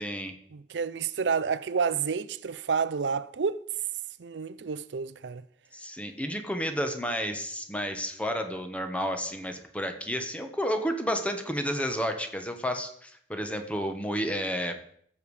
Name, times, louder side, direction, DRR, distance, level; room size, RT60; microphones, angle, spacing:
voice 1, 0.0-0.3 5.7-14.8, equal, 10° left, 1.2 m, -31 dB
voice 2, 0.5-3.6 4.2-5.4, right 5 dB, 85° right, 0.5 m, -29 dB
15.0 x 7.1 x 4.9 m
head